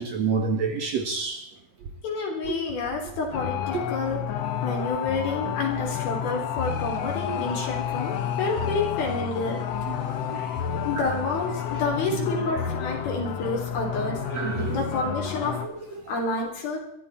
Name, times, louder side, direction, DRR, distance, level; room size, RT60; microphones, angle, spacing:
voice 1, 0.0-1.4 2.4-2.6 3.7-3.8 10.3-10.8 12.1-12.3 14.3-14.8 15.6-15.7, right 5 dB, 60° right, 1.9 m, -28 dB
voice 2, 2.0-4.2 4.6-9.6 10.8-15.6 16.1-16.8, left 3 dB, 65° left, 5.5 m, -29 dB
sound 1, 3.3-15.7, left 8 dB, 85° left, 1.4 m, -30 dB
22.0 x 13.5 x 4.3 m
omnidirectional pair, 4.6 m